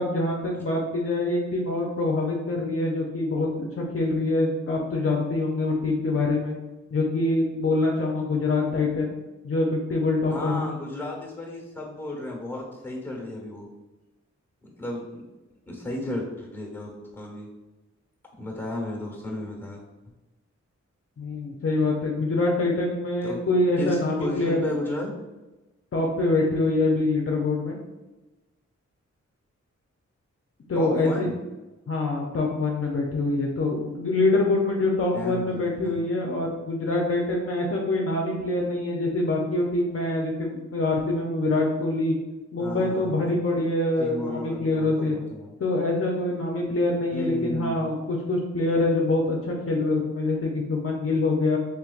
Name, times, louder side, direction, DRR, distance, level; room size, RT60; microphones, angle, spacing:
voice 1, 0.0-6.6 6.9-9.1 9.4-10.7 21.2-24.8 25.9-27.8 30.7-31.3 31.9-42.2 42.5-45.2 45.6-51.6, left 2 dB, 50° left, -1 dB, 0.6 m, -25 dB
voice 2, 10.3-13.7 14.8-15.2 15.7-17.5 18.4-19.8 23.2-23.4 23.8-25.1 30.7-31.4 35.1-36.0 42.6-43.4 44.0-45.5 47.1-47.8, left 1 dB, 5° left, -1 dB, 1.2 m, -34 dB
3.2 x 3.2 x 2.4 m, 1.1 s
cardioid pair, 55°, 29 cm